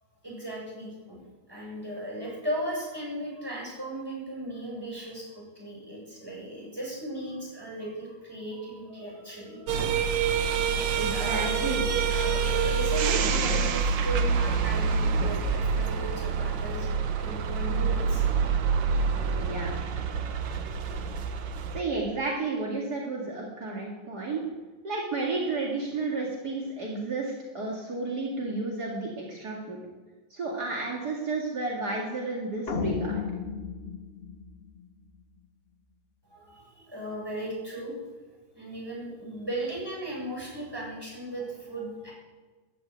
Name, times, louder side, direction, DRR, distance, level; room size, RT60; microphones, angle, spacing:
voice 1, 0.2-1.2 1.5-9.8 11.1-18.2 18.6-18.8 20.2-20.5 36.3-38.0 38.5-42.1, right 1 dB, 10° right, -4 dB, 7.3 m, -37 dB
sound 1, 9.7-21.8, right 5 dB, 80° right, 1.7 m, -27 dB
voice 2, 11.0-11.8 19.2-19.8 21.7-24.5 24.8-29.8 30.3-33.2, right 3 dB, 60° right, -2 dB, 2.7 m, -32 dB
sound 2, 32.7-35.1, left 5 dB, 35° left, 1.2 m, -33 dB
14.5 x 10.5 x 9.1 m, 1.3 s
omnidirectional pair, 2.0 m